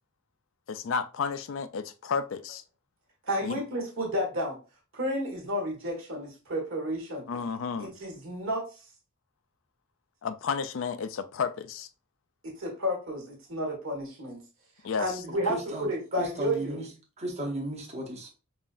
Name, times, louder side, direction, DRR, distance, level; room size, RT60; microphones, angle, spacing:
voice 1, 0.7-2.6 3.4-3.6 7.3-7.9 10.2-11.9 14.8-15.1, left 5 dB, 65° left, 0.4 m, -32 dB
voice 2, 3.2-4.6 4.9-7.2 7.8-8.9 12.4-14.4 15.0-16.8, equal, 70° right, 1.6 m, -31 dB
voice 3, 15.5-15.9 16.2-16.9 17.2-18.3, right 1 dB, 30° right, 0.9 m, -35 dB
5.4 x 2.5 x 2.5 m
head